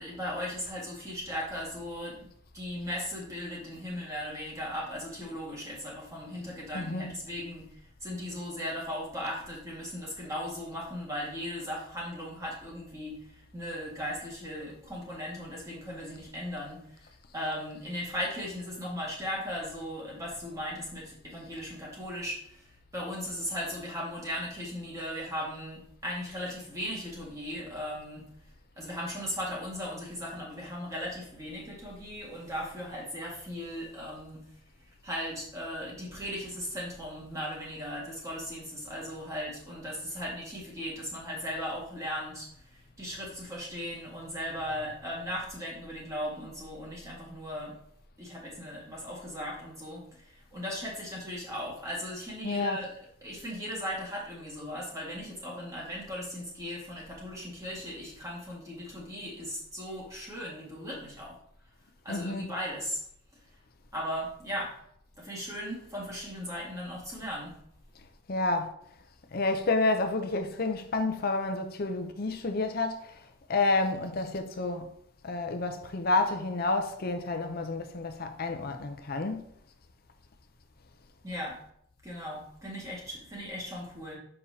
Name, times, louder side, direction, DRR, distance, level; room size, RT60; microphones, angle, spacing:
voice 1, 0.0-2.3 2.5-28.3 28.8-34.5 35.0-47.8 48.2-52.9 53.2-61.4 62.0-63.0 63.9-64.7 65.2-67.6 81.2-81.6 82.0-84.2, equal, 15° right, 1.9 m, -37 dB
voice 2, 6.7-7.1 52.4-52.8 62.1-62.5 68.3-68.7 69.3-73.2 73.5-74.9 75.2-79.4, left 3 dB, 45° left, 0.6 m, -29 dB
6.8 x 5.5 x 2.8 m
head